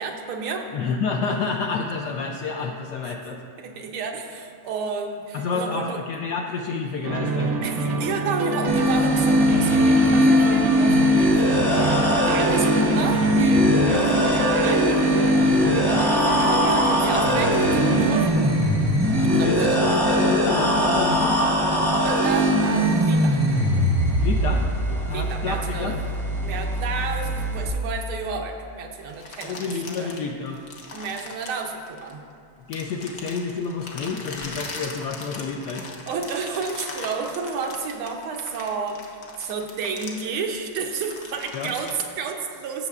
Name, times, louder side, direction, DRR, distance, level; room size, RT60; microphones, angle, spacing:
voice 1, 0.0-0.7 3.0-3.2 3.6-6.0 7.6-12.0 12.3-18.4 19.3-19.8 21.9-23.4 25.1-26.1 26.4-30.2 30.9-32.2 36.1-42.9, right 5 dB, 85° right, 3 dB, 1.6 m, -31 dB
voice 2, 0.7-3.4 5.3-7.5 13.9-14.0 19.3-21.4 24.2-26.0 29.4-30.6 32.7-35.9 41.5-41.7, left 5 dB, 80° left, 2 dB, 0.9 m, -29 dB
sound 1, 7.0-18.3, right 3 dB, 65° right, 1.2 m, -26 dB
sound 2, 8.7-27.7, equal, 20° right, 0.7 m, -20 dB
sound 3, 29.1-32.3 32.7-41.9, left 3 dB, 55° left, 1.1 m, -39 dB
16.0 x 6.5 x 2.4 m, 2.4 s
omnidirectional pair, 2.2 m